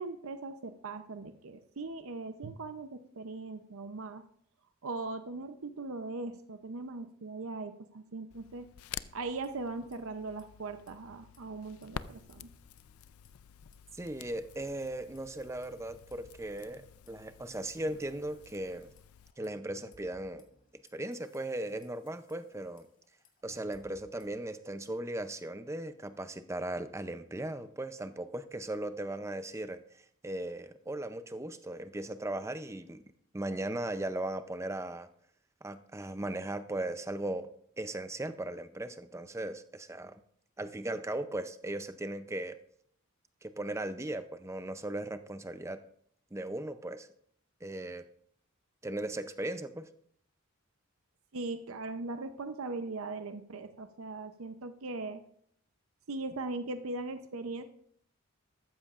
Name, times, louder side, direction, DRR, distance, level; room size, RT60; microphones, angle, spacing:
voice 1, 0.0-4.2 4.8-8.7 9.1-12.5 51.3-55.2 56.1-57.6, right 3 dB, 75° right, 9 dB, 0.7 m, -39 dB
Crackle, 8.3-19.3, left 8 dB, 85° left, 0.4 m, -50 dB
sound 1, 9.2-10.0 10.2-10.4 10.8-13.5 13.7-14.2 14.7-18.1 18.5-24.4, left 1 dB, 40° left, 1.9 m, -64 dB
voice 2, 14.0-18.9 19.4-20.5 20.9-22.9 23.4-33.0 33.3-35.1 35.6-37.5 37.8-40.2 40.6-42.6 43.4-45.8 46.3-47.1 47.6-48.0 48.8-49.9, right 1 dB, 15° right, 10 dB, 0.5 m, -37 dB
14.0 x 13.0 x 2.5 m, 0.65 s
head